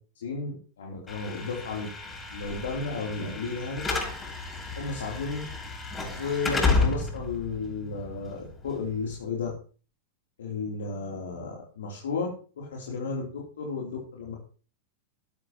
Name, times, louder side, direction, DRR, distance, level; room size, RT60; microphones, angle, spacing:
voice 1, 0.2-1.9 2.3-3.8 4.7-5.4 6.2-9.5 10.4-12.3 12.5-13.3 13.6-14.4, left 4 dB, 75° left, -2 dB, 3.2 m, -33 dB
Slam / Alarm, 1.1-9.1, left 3 dB, 15° left, 7.8 m, -31 dB
13.5 x 11.5 x 3.0 m, 0.38 s
hypercardioid pair, 100°, 0 cm